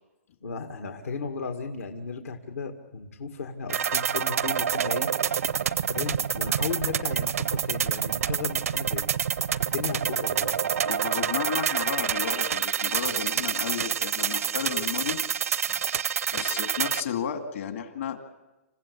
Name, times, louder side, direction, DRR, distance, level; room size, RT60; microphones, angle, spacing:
voice 1, 0.4-5.1 5.9-9.1 9.6-10.6, left 5 dB, 85° left, 4 dB, 1.9 m, -35 dB
sound 1, 3.7-17.0, right 8 dB, 75° right, 0.7 m, -27 dB
voice 2, 10.8-15.2 15.7-16.0 16.3-18.2, left 8 dB, 65° left, 6 dB, 2.5 m, -33 dB
28.0 x 15.5 x 8.6 m, 1.1 s
hypercardioid pair, 140°, 8 cm